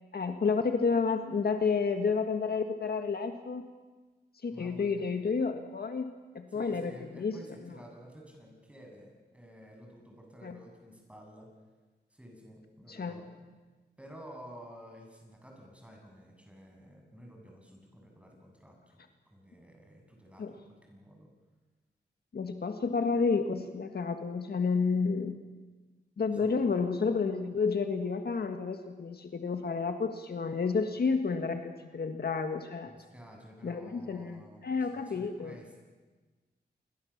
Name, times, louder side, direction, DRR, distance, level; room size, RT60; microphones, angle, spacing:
voice 1, 0.1-3.6 4.4-6.9 7.2-7.4 10.4-10.6 12.9-13.2 20.4-20.5 22.3-25.4 26.2-32.9 33.6-35.5, left 5 dB, 60° left, 7 dB, 1.7 m, -30 dB
voice 2, 4.5-5.1 6.5-11.5 12.1-13.4 14.0-19.0 19.3-21.3 26.3-26.5 32.8-35.8, equal, 5° right, 0 dB, 7.7 m, -52 dB
28.0 x 22.5 x 7.4 m, 1.3 s
wide cardioid pair, 115°, 18 cm